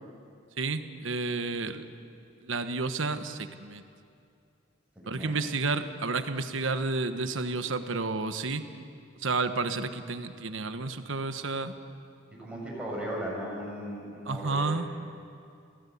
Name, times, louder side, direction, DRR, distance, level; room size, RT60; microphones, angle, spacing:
voice 1, 0.6-1.8 2.4-3.8 5.1-8.6 9.2-11.7 14.3-14.9, right 3 dB, 70° right, 9 dB, 1.3 m, -31 dB
voice 2, 12.4-14.8, right 1 dB, 5° right, -4 dB, 7.1 m, -36 dB
29.0 x 16.5 x 8.6 m, 2.5 s
head